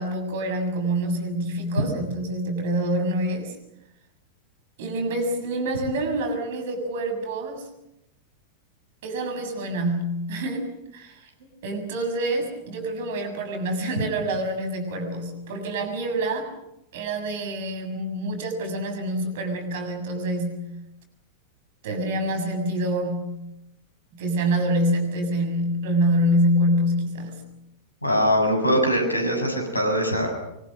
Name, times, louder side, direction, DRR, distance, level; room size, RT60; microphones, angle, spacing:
voice 1, 0.0-3.5 4.8-7.7 9.0-10.7 10.9-11.3 11.6-16.5 16.9-20.6 21.8-23.4 24.1-27.4, right 1 dB, 55° right, 6 dB, 6.8 m, -26 dB
voice 2, 28.0-30.3, equal, 85° left, 5 dB, 7.3 m, -22 dB
25.0 x 24.5 x 6.6 m, 0.84 s
figure-of-eight pair, 90°, 0 cm